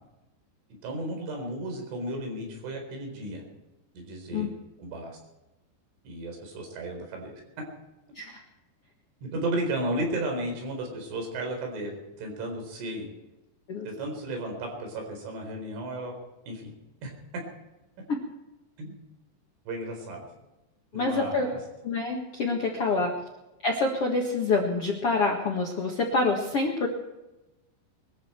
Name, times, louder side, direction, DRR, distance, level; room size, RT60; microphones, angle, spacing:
voice 1, 0.8-3.4 3.9-5.2 6.0-7.4 9.2-13.1 13.8-16.1 16.5-16.7 17.0-17.1 18.8-19.0 19.7-20.3 20.9-21.6 22.9-23.1, right 1 dB, 90° right, 2 dB, 6.6 m, -34 dB
voice 2, 20.9-21.5 21.8-23.1 23.6-26.9, left 3 dB, 60° left, 0 dB, 1.5 m, -26 dB
22.0 x 13.5 x 4.5 m, 1.0 s
omnidirectional pair, 5.3 m